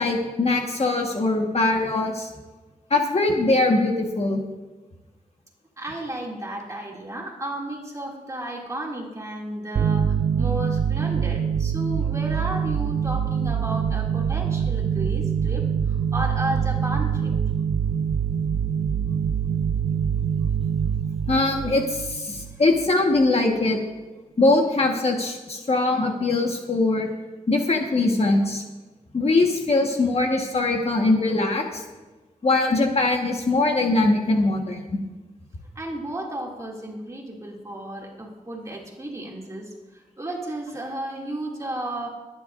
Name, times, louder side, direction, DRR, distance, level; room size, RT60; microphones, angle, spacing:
voice 1, 0.0-2.3 2.9-4.4 21.3-23.8 24.4-27.1 27.5-28.6 29.1-31.8 32.4-34.9, left 2 dB, 50° left, 1 dB, 1.5 m, -22 dB
voice 2, 5.8-17.4 22.3-22.6 35.7-42.1, right 1 dB, 20° right, -2 dB, 2.7 m, -33 dB
sound 1, 9.7-22.9, right 7 dB, 55° right, 0.4 m, -24 dB
22.0 x 10.5 x 2.7 m, 1.2 s
wide cardioid pair, 135°, 14 cm